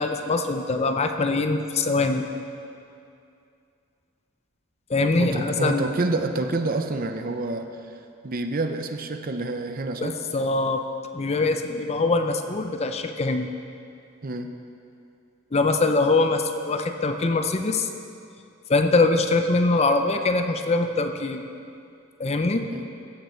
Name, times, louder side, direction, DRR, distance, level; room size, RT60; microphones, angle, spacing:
voice 1, 0.0-2.3 4.9-5.9 10.0-10.8 11.1-13.5 15.5-17.9 18.7-21.4 22.2-22.6, left 3 dB, 30° left, 6 dB, 0.5 m, -23 dB
voice 2, 5.2-7.9 8.2-10.1 14.2-14.5 22.7-22.8, right 2 dB, 45° right, 7 dB, 0.6 m, -28 dB
15.5 x 7.9 x 4.5 m, 2.5 s
head